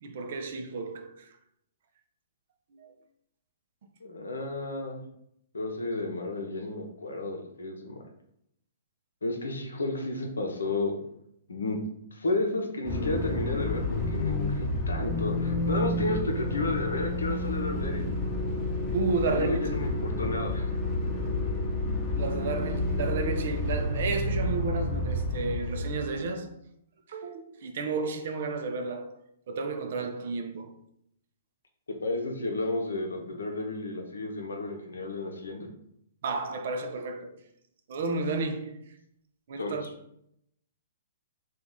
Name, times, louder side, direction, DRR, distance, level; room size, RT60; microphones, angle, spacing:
voice 1, 0.0-1.3 2.7-2.9 18.9-19.6 22.1-26.5 27.1-29.2 29.5-30.7 36.2-37.4 37.9-38.8 39.5-39.9, right 4 dB, 55° right, 0.5 m, -32 dB
voice 2, 4.0-5.0 5.5-8.0 9.2-10.9 11.5-11.8 12.1-18.1 19.2-20.7 32.0-35.7 39.6-39.8, left 2 dB, 80° left, 0.7 m, -32 dB
sound 1, 12.8-26.3, left 2 dB, 25° left, 0.8 m, -30 dB
2.9 x 2.4 x 3.7 m
figure-of-eight pair, 120°, 0 cm